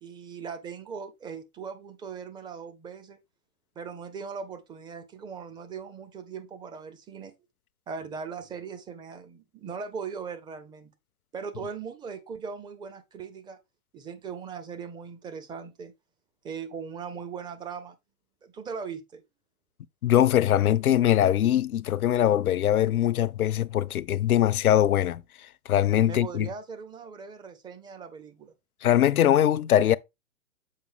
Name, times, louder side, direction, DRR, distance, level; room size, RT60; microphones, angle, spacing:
voice 1, 0.0-3.2 3.8-7.3 7.9-10.9 11.3-13.6 13.9-15.9 16.4-18.0 18.4-19.2 26.0-28.5, right 6 dB, 10° right, 0.6 m, -39 dB
voice 2, 20.0-25.2 25.7-26.5 28.8-30.0, left 11 dB, 75° left, 0.7 m, -22 dB
7.4 x 5.2 x 3.5 m
hypercardioid pair, 125°, 44 cm